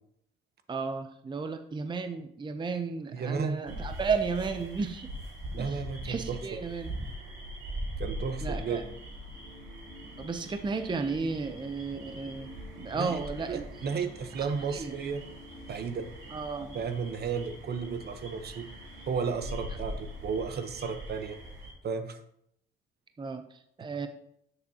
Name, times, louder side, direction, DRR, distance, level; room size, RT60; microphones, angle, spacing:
voice 1, 0.7-5.1 5.6-6.9 8.4-8.8 10.2-13.6 14.4-14.9 16.3-16.7 23.2-24.1, right 4 dB, 25° right, 7 dB, 0.6 m, -34 dB
voice 2, 3.1-3.6 5.5-6.4 8.0-8.8 12.9-13.2 13.5-15.2 15.7-16.1 16.7-18.7 19.1-21.4 21.8-22.2, right 5 dB, 55° right, 8 dB, 0.9 m, -33 dB
sound 1, 3.7-21.7, equal, 80° right, 3.7 m, -42 dB
sound 2, 8.4-20.3, left 2 dB, 45° left, 2.3 m, -53 dB
11.5 x 6.8 x 2.8 m, 0.75 s
cardioid pair, 90°, 20 cm